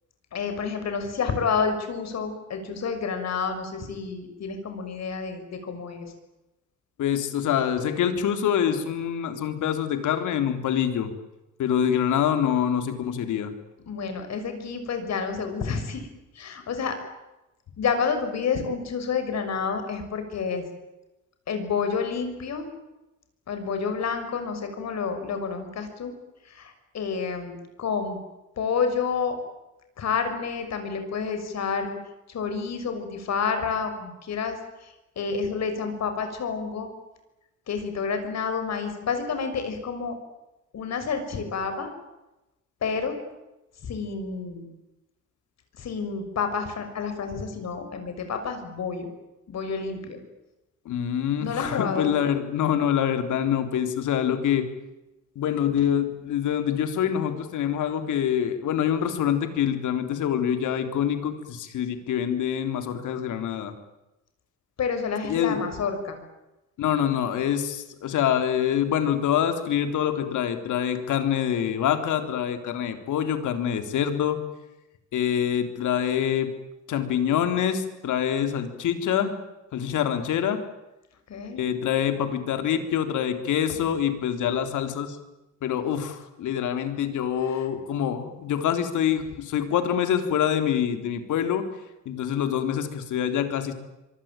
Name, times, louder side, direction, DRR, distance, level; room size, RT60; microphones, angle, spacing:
voice 1, 0.3-6.1 13.9-16.1 16.3-17.0 17.8-20.7 21.5-22.7 23.5-26.1 26.4-28.2 28.6-29.4 30.0-32.0 32.3-36.9 37.7-40.2 40.7-41.9 42.8-43.2 43.8-44.7 45.8-49.1 49.5-50.2 51.4-52.1 64.8-66.2 81.3-81.6 87.5-87.6, left 5 dB, 60° left, 7 dB, 6.3 m, -29 dB
voice 2, 7.0-11.1 11.6-13.5 50.9-54.7 55.4-63.7 65.3-65.6 66.8-74.4 75.1-76.5 76.9-79.4 79.7-80.6 81.5-85.2 85.6-91.7 92.1-93.7, left 9 dB, 80° left, 8 dB, 3.7 m, -25 dB
25.5 x 23.5 x 9.1 m, 0.97 s
cardioid pair, 90°, 30 cm